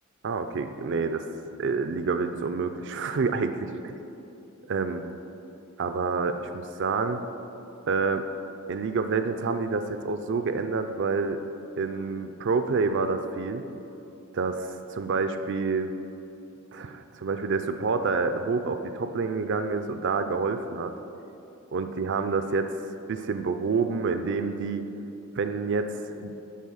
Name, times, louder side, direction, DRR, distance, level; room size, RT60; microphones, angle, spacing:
voice 1, 0.2-1.3 1.6-3.6 4.7-5.0 5.8-7.2 7.9-8.3 8.7-11.4 11.8-13.6 14.3-15.9 16.7-20.9 21.7-22.7 23.1-24.8 25.4-26.3, right 4 dB, 60° right, 8 dB, 0.5 m, -28 dB
11.0 x 4.3 x 6.3 m, 2.9 s
head